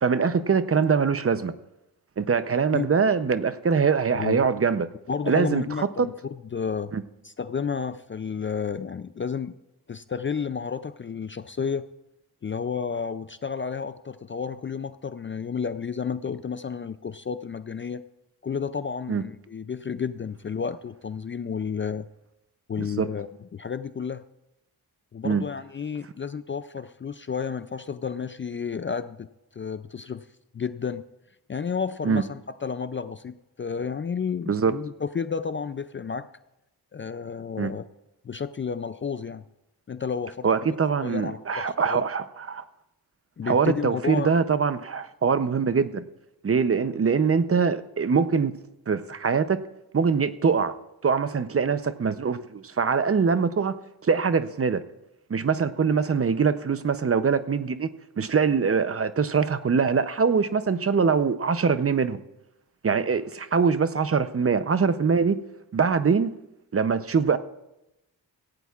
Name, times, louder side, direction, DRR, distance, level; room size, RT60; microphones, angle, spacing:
voice 1, 0.0-1.5 2.2-4.9 5.3-6.1 6.9-7.0 19.1-19.2 22.8-23.1 25.2-25.4 32.0-32.2 34.5-34.7 37.6-37.7 40.4-42.6 43.4-46.0 46.4-48.5 48.9-49.6 49.9-50.7 51.0-53.7 54.0-54.8 55.3-57.9 58.2-62.2 62.8-65.4 65.7-66.4 66.7-67.4, right 5 dB, 35° right, 12 dB, 0.6 m, -23 dB
voice 2, 5.1-6.1 6.5-6.9 7.2-9.6 9.9-11.9 12.4-18.0 18.4-22.1 22.7-24.2 25.1-29.3 29.5-30.3 30.5-31.1 31.5-36.3 36.9-37.8 38.2-39.4 39.9-40.5 41.0-42.0 43.4-44.3, left 6 dB, 30° left, 12 dB, 0.4 m, -31 dB
17.5 x 15.5 x 2.4 m, 0.89 s
wide cardioid pair, 105°, 39 cm